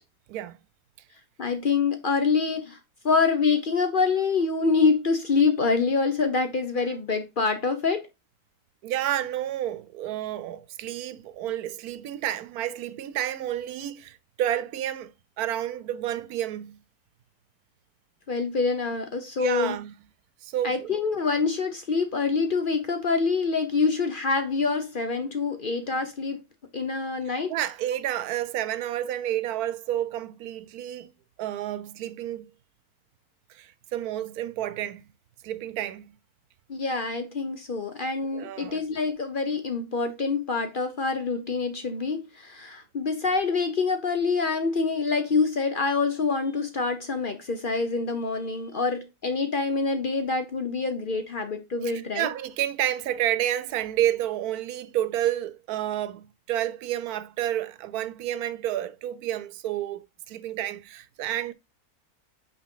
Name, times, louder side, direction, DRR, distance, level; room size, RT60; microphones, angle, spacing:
voice 1, 1.4-2.8 3.0-8.1 18.3-19.8 20.6-26.4 26.7-27.5 36.7-52.3, left 4 dB, 45° left, 0.7 m, -26 dB
voice 2, 8.8-15.1 15.4-16.8 19.4-19.9 20.4-21.0 27.3-31.1 31.4-32.5 33.5-35.0 35.4-36.2 38.3-38.8 51.8-61.5, right 12 dB, 90° right, 1.1 m, -30 dB
5.7 x 4.4 x 3.7 m
omnidirectional pair, 1.6 m